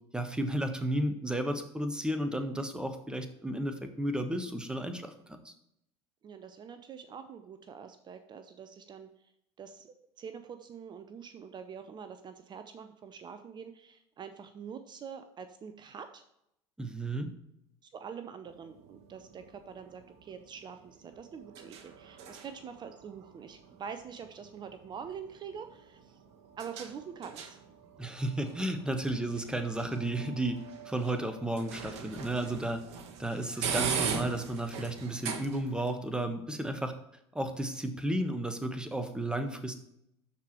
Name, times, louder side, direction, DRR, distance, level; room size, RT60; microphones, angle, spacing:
voice 1, 0.1-5.5 16.8-17.3 28.0-30.6 30.8-32.8 33.2-36.9 37.3-39.7, right 1 dB, 5° right, 8 dB, 1.2 m, -33 dB
voice 2, 6.2-9.1 9.6-16.2 17.9-26.2 26.6-27.6, right 7 dB, 30° right, 9 dB, 0.7 m, -45 dB
sound 1, 18.4-35.9, right 6 dB, 50° right, 1.3 m, -41 dB
12.5 x 4.7 x 3.0 m, 0.77 s
figure-of-eight pair, 75°, 14 cm